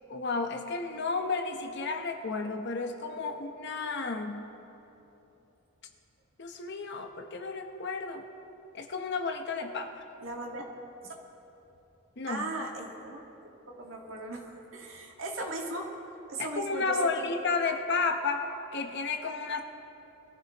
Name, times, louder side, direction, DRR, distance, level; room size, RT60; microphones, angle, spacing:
voice 1, 0.1-4.5 6.4-8.2 8.7-10.1 12.2-12.5 16.4-19.6, left 4 dB, 50° left, 5 dB, 0.9 m, -32 dB
voice 2, 10.2-10.6 11.0-11.1 12.3-13.2 13.7-15.9 16.3-17.3, right 2 dB, 60° right, 0 dB, 1.7 m, -37 dB
22.5 x 14.0 x 3.0 m, 3.0 s
head